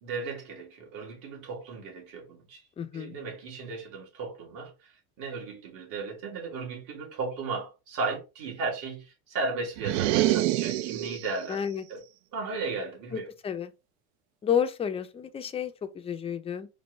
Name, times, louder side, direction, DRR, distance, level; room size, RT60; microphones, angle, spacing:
voice 1, 0.0-2.6 2.9-4.7 5.2-11.6 11.9-12.0 12.3-13.3, right 4 dB, 55° right, 1.8 m, -35 dB
voice 2, 2.8-3.1 11.5-11.8 13.1-13.7 14.4-16.7, left 8 dB, 15° left, 0.4 m, -31 dB
sound 1, 9.8-11.4, right 15 dB, 75° right, 0.5 m, -26 dB
4.4 x 2.6 x 3.0 m
supercardioid pair, 115°, 38 cm